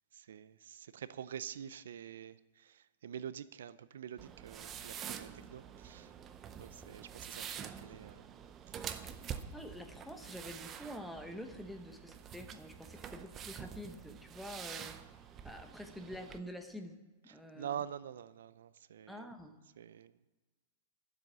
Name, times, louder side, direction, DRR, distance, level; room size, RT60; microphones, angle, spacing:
voice 1, 0.1-6.1 6.6-8.3 8.7-9.0 17.3-19.3 19.8-20.3, right 9 dB, 80° right, 16 dB, 0.5 m, -46 dB
sound 1, 4.2-16.4, right 8 dB, 20° right, 0.6 m, -47 dB
voice 2, 9.5-15.0 15.4-17.0 17.2-17.8 19.1-19.6, equal, ahead, 5 dB, 0.9 m, -47 dB
12.0 x 7.6 x 6.2 m, 1.3 s
supercardioid pair, 155°, 0 cm